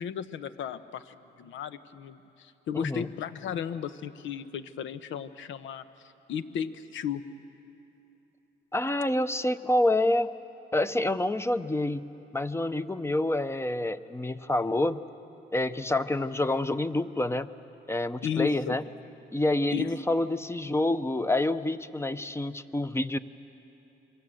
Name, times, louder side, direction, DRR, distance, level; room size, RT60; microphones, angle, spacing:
voice 1, 0.0-5.8 6.3-7.2 18.2-18.8 19.7-19.9, left 8 dB, 75° left, 12 dB, 1.0 m, -34 dB
voice 2, 2.7-3.1 8.7-10.3 10.7-12.1 12.3-15.0 15.5-17.5 17.9-18.8 19.3-23.2, left 1 dB, 15° left, 12 dB, 0.8 m, -27 dB
26.5 x 23.5 x 7.8 m, 3.0 s
cardioid pair, 90°, 20 cm